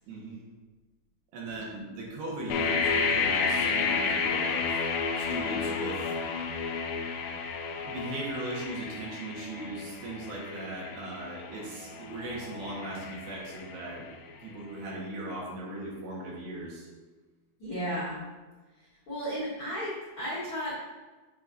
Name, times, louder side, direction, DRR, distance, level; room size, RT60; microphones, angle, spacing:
voice 1, 0.1-0.4 1.3-4.7 5.2-6.1 7.8-14.1 14.4-16.9, right 2 dB, 70° right, -3 dB, 3.2 m, -38 dB
sound 1, 2.5-14.3, left 5 dB, 85° left, 2.0 m, -31 dB
voice 2, 17.6-18.2 19.1-20.7, equal, 65° left, -8 dB, 1.3 m, -34 dB
8.3 x 5.8 x 2.6 m, 1.3 s
omnidirectional pair, 4.9 m